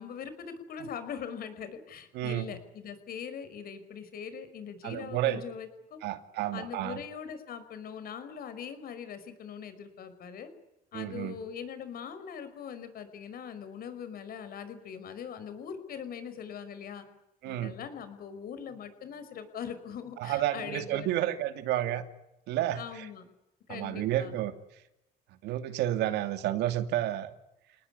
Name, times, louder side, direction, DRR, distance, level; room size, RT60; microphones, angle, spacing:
voice 1, 0.0-6.0 6.5-10.5 10.9-17.1 17.4-21.1 22.8-23.3 23.7-24.3, left 7 dB, 60° left, 12 dB, 5.3 m, -41 dB
voice 2, 2.1-2.5 4.8-5.4 6.0-7.0 10.9-11.4 17.4-17.7 20.2-22.0 22.5-23.1 23.7-24.5 25.4-27.3, right 13 dB, 85° right, 9 dB, 2.6 m, -31 dB
29.5 x 19.0 x 10.0 m, 0.90 s
cardioid pair, 110°, 17 cm